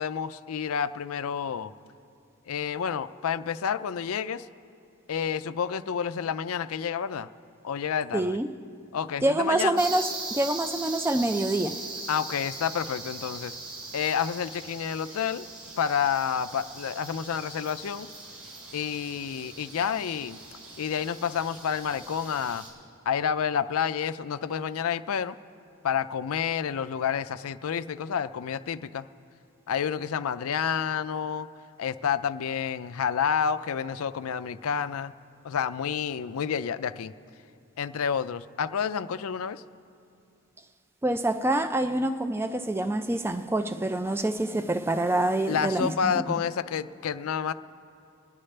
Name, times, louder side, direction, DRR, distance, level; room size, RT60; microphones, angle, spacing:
voice 1, 0.0-1.7 2.5-4.5 5.1-7.3 7.6-8.4 8.9-9.8 12.1-13.5 13.9-15.5 15.8-18.1 18.7-20.4 20.8-22.7 23.1-25.4 25.8-29.1 29.7-31.5 31.8-35.1 35.4-37.1 37.8-39.6 45.5-47.5, left 7 dB, 70° left, 0.4 m, -29 dB
voice 2, 8.1-8.5 9.2-11.8 41.0-46.2, right 1 dB, 10° right, 0.4 m, -26 dB
sound 1, 9.8-22.7, right 3 dB, 75° right, 4.1 m, -40 dB
28.0 x 10.0 x 3.3 m
head